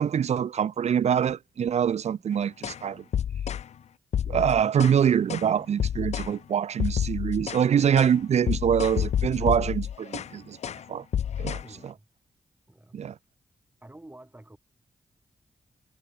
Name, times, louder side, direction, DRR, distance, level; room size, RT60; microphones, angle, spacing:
voice 1, 0.0-3.0 4.3-10.6 10.9-11.0 11.4-11.9 12.9-13.1, right 8 dB, 70° right, 0.6 m, -25 dB
sound 1, 2.6-2.8 3.1-3.7 4.1-5.0 5.3-5.5 5.8-6.3 6.8-7.6 8.0-8.2 8.5-10.3 10.6-10.8 11.1-11.7, left 9 dB, 70° left, 0.4 m, -29 dB
voice 2, 11.6-12.1 12.7-13.0 13.8-14.6, right 1 dB, 15° right, 4.0 m, -49 dB
cardioid pair, 70°, 12 cm